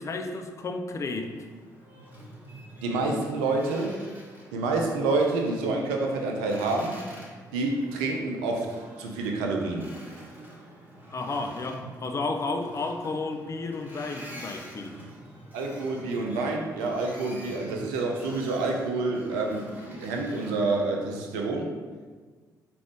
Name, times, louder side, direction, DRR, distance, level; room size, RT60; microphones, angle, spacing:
voice 1, 0.0-1.4 11.1-15.0, left 3 dB, 30° left, 5 dB, 0.4 m, -32 dB
Boat Water vehicle, 1.1-20.9, equal, 15° right, 1.1 m, -47 dB
voice 2, 2.8-3.9 4.5-7.0 7.5-9.9 15.5-21.7, right 3 dB, 70° right, 1 dB, 0.5 m, -28 dB
4.8 x 2.5 x 3.4 m, 1.5 s
figure-of-eight pair, 40°, 10 cm